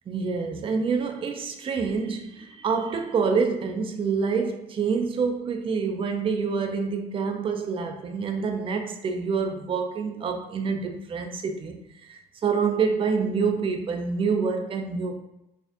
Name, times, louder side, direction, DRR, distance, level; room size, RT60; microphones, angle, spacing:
voice 1, 0.1-11.8 12.1-15.1, right 5 dB, 30° right, 0.4 m, -27 dB
4.2 x 2.5 x 2.7 m
cardioid pair, 110°, 17 cm